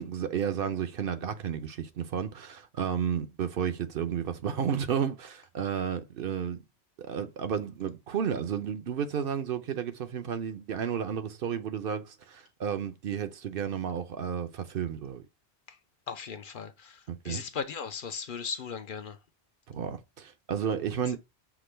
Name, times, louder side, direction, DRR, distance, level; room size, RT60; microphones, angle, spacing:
voice 1, 0.0-6.6 7.0-15.2 17.1-17.4 19.7-21.2, right 8 dB, 65° right, 0.8 m, -32 dB
voice 2, 16.1-19.2, left 6 dB, 60° left, 0.7 m, -37 dB
6.0 x 2.2 x 3.2 m
omnidirectional pair, 1.1 m